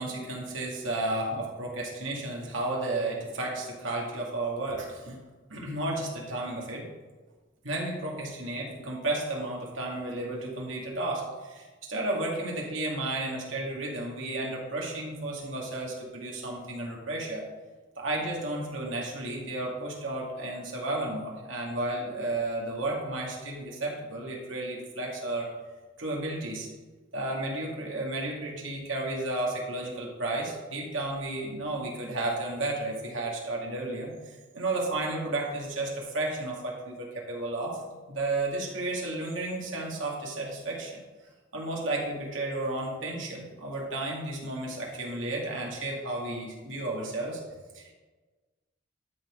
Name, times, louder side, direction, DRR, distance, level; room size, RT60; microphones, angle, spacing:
voice 1, 0.0-5.2 5.5-6.8 7.6-17.4 18.0-25.5 26.0-26.7 27.1-37.8 38.1-40.9 41.5-47.4 47.7-47.9, right 2 dB, 70° right, -2 dB, 2.3 m, -33 dB
12.0 x 4.4 x 5.1 m, 1.3 s
head